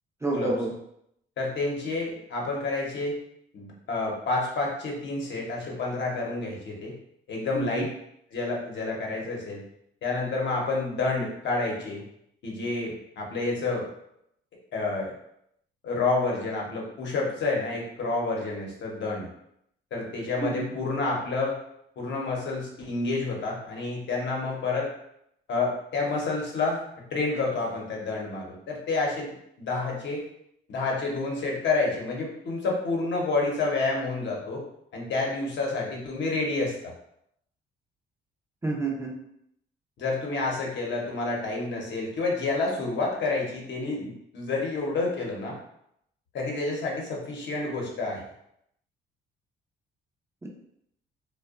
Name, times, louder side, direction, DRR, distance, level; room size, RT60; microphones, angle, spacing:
voice 1, 0.2-0.7 7.5-7.9 20.4-20.8 38.6-39.1 50.4-50.5, right 3 dB, 15° right, -1 dB, 0.4 m, -29 dB
voice 2, 1.4-3.2 3.5-6.9 7.3-7.9 8.3-9.6 10.0-12.0 12.4-13.9 14.7-15.1 15.8-19.3 19.9-21.6 22.0-24.9 25.5-26.8 27.1-30.2 30.7-34.6 34.9-36.7 40.0-45.6 46.3-48.2, left 3 dB, 65° left, -1 dB, 0.8 m, -29 dB
2.7 x 2.2 x 2.4 m, 0.75 s
cardioid pair, 90°, 20 cm